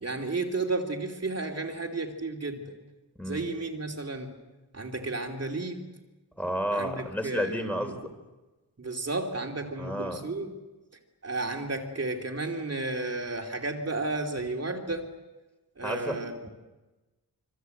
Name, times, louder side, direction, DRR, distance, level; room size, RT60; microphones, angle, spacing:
voice 1, 0.0-2.7 3.2-4.3 4.7-5.9 6.7-7.9 8.8-10.5 11.2-15.1 15.8-16.5, right 2 dB, 40° right, 2 dB, 2.8 m, -33 dB
voice 2, 3.2-3.5 6.4-8.1 9.8-10.2 15.8-16.2, equal, 5° left, 5 dB, 3.7 m, -31 dB
26.0 x 25.5 x 7.9 m, 1.1 s
wide cardioid pair, 145°, 39 cm